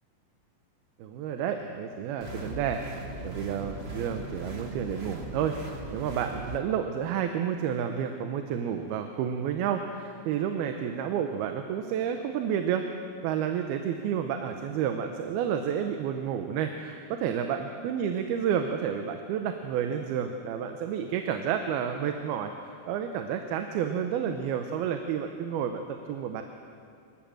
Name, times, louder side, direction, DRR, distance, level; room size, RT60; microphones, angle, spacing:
voice 1, 1.0-2.8 3.2-5.5 5.9-12.9 13.2-22.5 22.9-26.4, right 8 dB, 85° right, 6 dB, 2.8 m, -30 dB
sound 1, 2.2-6.6, right 1 dB, 50° right, 0.7 m, -39 dB
26.0 x 14.5 x 7.8 m, 2.5 s
omnidirectional pair, 4.4 m